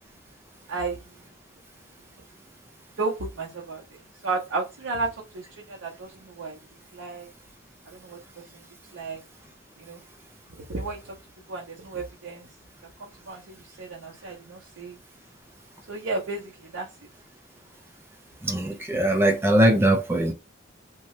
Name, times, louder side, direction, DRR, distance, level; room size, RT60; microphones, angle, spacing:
voice 1, 0.7-1.0 3.0-6.6 6.9-7.3 7.9-8.2 8.9-9.2 9.8-10.0 10.7-11.1 11.5-12.5 13.0-15.0 15.9-16.9, right 3 dB, 85° right, 0.7 m, -33 dB
voice 2, 18.4-20.3, right 1 dB, 10° right, 0.4 m, -21 dB
2.8 x 2.2 x 3.0 m
head